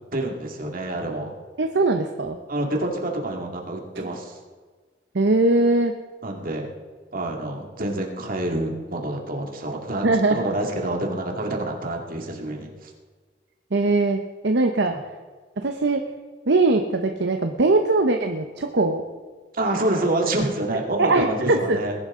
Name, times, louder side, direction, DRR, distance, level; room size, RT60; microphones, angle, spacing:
voice 1, 0.1-1.3 2.5-4.4 6.2-6.7 7.1-12.9 14.9-15.0 19.5-21.9, right 1 dB, 50° right, 1 dB, 2.2 m, -27 dB
voice 2, 1.6-2.4 5.1-5.9 10.0-10.5 13.7-14.9 15.6-16.0 16.5-19.0 21.0-21.8, right 2 dB, 65° right, 5 dB, 0.8 m, -21 dB
20.5 x 11.0 x 3.8 m, 1.5 s
head